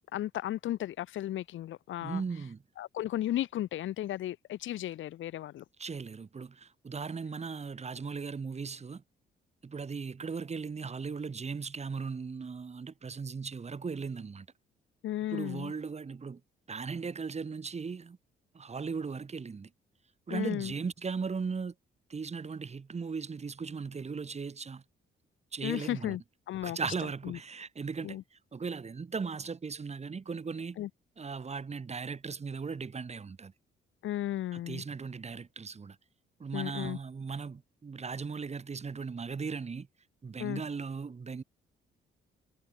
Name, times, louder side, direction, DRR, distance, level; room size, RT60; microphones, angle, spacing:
voice 1, 0.1-2.2 2.8-5.6 15.0-15.7 20.3-20.7 25.6-26.2 26.5-26.8 27.2-27.4 28.0-28.2 30.8-30.9 34.0-34.8 36.5-37.0 40.4-40.6, left 13 dB, 75° left, 1.7 m, -34 dB
voice 2, 2.0-2.6 5.8-9.0 9.6-14.5 15.3-16.4 16.7-18.2 18.5-19.7 20.3-21.7 22.1-24.8 25.5-26.2 26.6-30.8 31.2-33.5 34.5-36.0 36.4-39.9 40.2-41.4, right 5 dB, 35° right, 2.9 m, -37 dB
cardioid pair, 90°, 20 cm